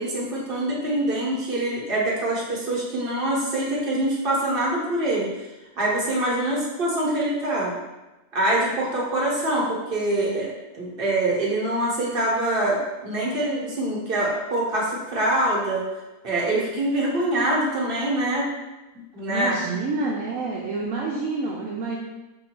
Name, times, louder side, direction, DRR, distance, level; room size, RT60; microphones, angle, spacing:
voice 1, 0.0-5.3 5.8-7.7 8.3-15.8 16.2-18.5 18.9-19.5, right 1 dB, 40° right, -5 dB, 1.3 m, -24 dB
voice 2, 19.3-22.0, right 3 dB, 70° right, -3 dB, 0.9 m, -28 dB
4.6 x 2.7 x 4.3 m, 1.1 s
omnidirectional pair, 1.6 m